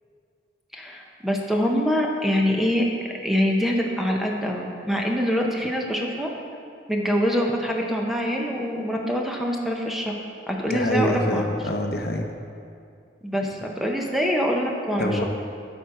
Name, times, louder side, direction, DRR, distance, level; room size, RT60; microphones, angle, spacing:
voice 1, 0.7-6.3 6.9-10.1 10.5-11.4 13.2-15.2, equal, ahead, 0 dB, 0.7 m, -24 dB
voice 2, 10.7-12.3 15.0-15.2, left 1 dB, 60° left, 3 dB, 0.7 m, -25 dB
12.5 x 4.5 x 4.7 m, 2.5 s
head